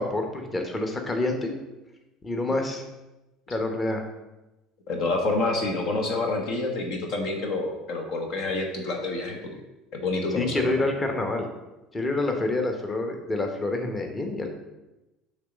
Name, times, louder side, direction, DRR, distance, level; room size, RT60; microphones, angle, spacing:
voice 1, 0.0-1.5 2.2-2.8 3.5-4.0 10.3-11.5 11.9-14.5, left 2 dB, 25° left, 4 dB, 1.0 m, -27 dB
voice 2, 4.9-9.6 10.0-10.7, left 2 dB, 55° left, 2 dB, 0.9 m, -28 dB
6.6 x 3.3 x 5.2 m, 1.0 s
figure-of-eight pair, 65°, 0 cm